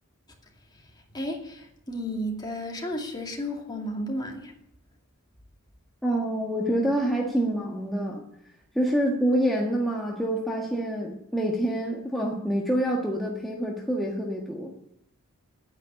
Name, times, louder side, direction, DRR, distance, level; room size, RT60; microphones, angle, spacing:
voice 1, 1.1-4.5, equal, 20° left, 0 dB, 2.5 m, -33 dB
voice 2, 6.0-8.2 8.7-14.7, right 1 dB, ahead, -3 dB, 1.5 m, -26 dB
9.7 x 9.7 x 9.9 m, 0.76 s
head